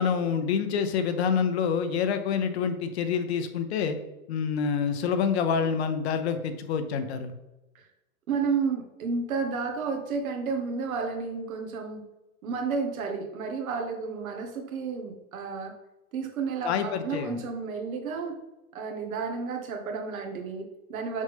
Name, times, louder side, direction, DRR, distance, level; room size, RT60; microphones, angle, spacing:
voice 1, 0.0-4.0 4.3-7.3 16.6-17.4, left 6 dB, 45° left, 8 dB, 0.8 m, -27 dB
voice 2, 8.3-12.0 12.4-15.8 16.1-18.4 18.7-21.2, right 5 dB, 70° right, 4 dB, 1.5 m, -31 dB
6.4 x 5.4 x 3.5 m, 0.97 s
hypercardioid pair, 150°, 44 cm